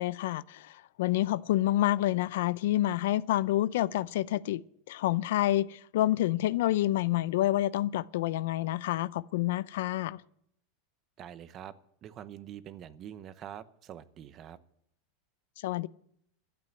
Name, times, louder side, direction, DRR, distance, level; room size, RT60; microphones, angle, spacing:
voice 1, 0.0-4.6 4.9-10.2 15.6-15.9, left 14 dB, 75° left, 0.5 m, -28 dB
voice 2, 11.2-11.7 12.0-14.6, right 10 dB, 35° right, 0.9 m, -45 dB
13.0 x 8.5 x 9.5 m
supercardioid pair, 145°, 0 cm